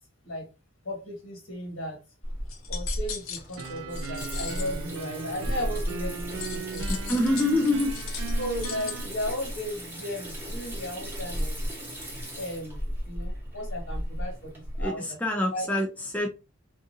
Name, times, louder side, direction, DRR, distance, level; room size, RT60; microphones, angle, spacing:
voice 1, 0.8-2.0 2.7-6.9 8.4-11.7 12.3-15.2 15.5-15.7, equal, 70° left, 0 dB, 1.4 m, -35 dB
Water tap faucet / Sink (filling or washing), 2.2-14.9, equal, 10° right, 1.0 m, -34 dB
sound 1, 2.5-4.8 6.4-8.9, left 7 dB, 85° left, 0.5 m, -39 dB
sound 2, 3.6-9.1, right 5 dB, 85° right, 0.4 m, -39 dB
voice 2, 6.9-7.9 14.8-16.3, left 1 dB, 10° left, 1 dB, 0.4 m, -26 dB
2.6 x 2.5 x 2.7 m, 0.29 s
head